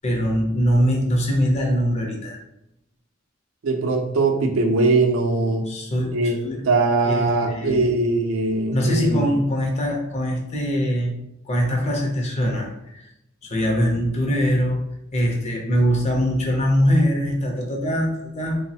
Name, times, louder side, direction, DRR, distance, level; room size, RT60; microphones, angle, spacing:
voice 1, 0.0-2.4 5.7-6.6 7.1-7.9 8.7-11.1 11.5-13.0 13.4-14.8 15.1-18.6, equal, 35° left, 1 dB, 0.5 m, -22 dB
voice 2, 3.6-5.6 6.1-6.4 6.6-9.3, right 3 dB, 75° right, 4 dB, 0.4 m, -21 dB
3.0 x 2.0 x 2.7 m, 0.84 s
head